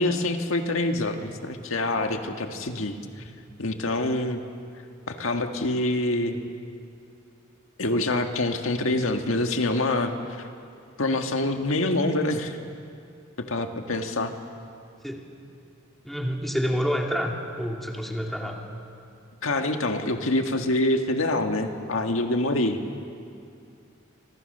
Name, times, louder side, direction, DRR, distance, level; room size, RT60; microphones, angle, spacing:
voice 1, 0.0-3.0 3.6-4.4 5.1-6.4 7.8-10.5 11.0-12.6 13.4-14.3 19.4-22.8, left 2 dB, 75° left, 5 dB, 1.8 m, -26 dB
voice 2, 16.0-18.6, equal, ahead, 0 dB, 2.6 m, -28 dB
27.5 x 25.5 x 6.7 m, 2.4 s
head